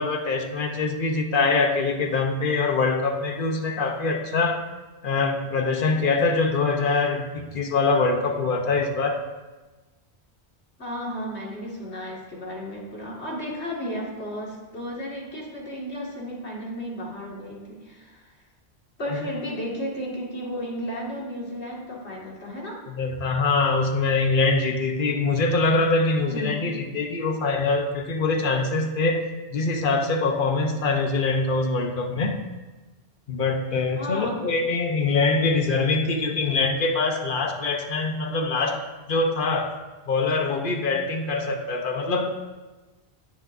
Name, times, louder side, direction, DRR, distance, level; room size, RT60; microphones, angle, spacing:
voice 1, 0.0-4.6 5.0-9.2 19.1-19.2 22.9-29.3 29.5-32.4 33.3-38.8 39.1-39.7 40.1-42.3, left 3 dB, 55° left, 5 dB, 1.1 m, -24 dB
voice 2, 10.8-18.3 19.0-22.8 26.3-26.8 33.9-34.5, equal, 80° left, -3 dB, 2.4 m, -33 dB
18.5 x 6.6 x 2.6 m, 1.2 s
omnidirectional pair, 1.1 m